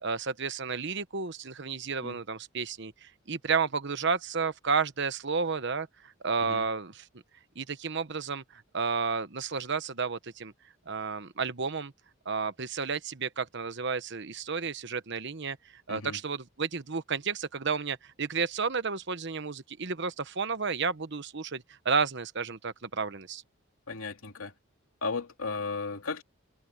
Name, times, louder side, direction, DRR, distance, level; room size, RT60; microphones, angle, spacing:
voice 1, 0.0-7.0 7.5-10.5 10.9-11.9 12.2-15.6 15.9-23.4, right 5 dB, 55° right, 1.1 m, -32 dB
voice 2, 15.9-16.2 23.9-24.5 25.0-26.2, left 4 dB, 80° left, 2.7 m, -35 dB
head